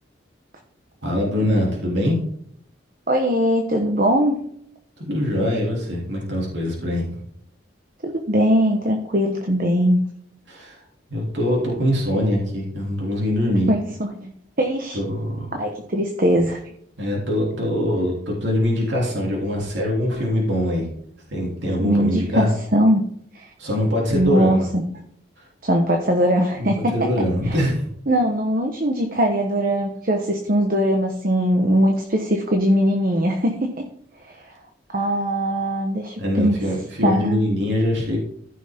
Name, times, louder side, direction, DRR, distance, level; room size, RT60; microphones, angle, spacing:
voice 1, 1.0-2.2 5.0-7.0 10.5-10.8 11.1-13.7 14.9-15.5 17.0-20.9 21.3-22.5 23.6-24.7 25.4-25.5 26.6-27.9 36.2-38.2, left 1 dB, 70° right, -3 dB, 3.2 m, -23 dB
voice 2, 3.1-4.4 8.0-10.0 13.5-14.3 14.6-15.0 15.5-16.6 21.8-23.0 23.3-23.5 24.1-24.6 25.6-27.1 27.5-27.6 28.1-33.8 34.9-36.6 37.0-37.6, equal, 45° right, 3 dB, 1.2 m, -20 dB
14.5 x 6.2 x 3.6 m, 0.67 s
head